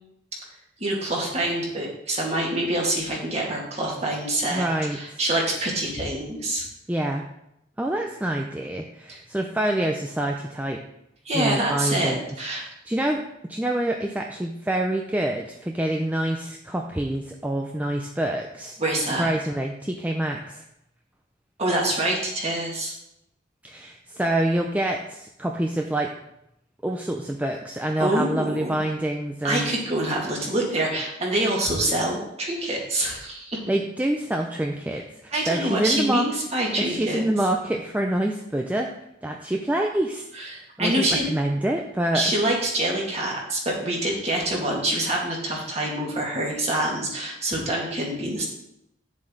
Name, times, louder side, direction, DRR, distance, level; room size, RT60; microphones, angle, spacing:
voice 1, 0.8-4.6 4.9-6.6 9.1-9.2 11.3-12.6 18.8-19.3 21.6-22.9 28.0-28.8 29.4-33.6 35.3-37.2 40.4-41.3 42.1-48.5, right 1 dB, 35° right, -2 dB, 2.1 m, -26 dB
voice 2, 4.5-5.2 6.9-7.2 7.8-10.8 11.3-12.2 12.5-13.2 13.5-18.8 19.2-20.6 23.6-26.1 26.8-29.7 33.7-36.3 36.8-38.9 39.2-42.2, right 1 dB, 10° right, 2 dB, 0.5 m, -26 dB
8.9 x 7.3 x 3.8 m, 0.82 s
head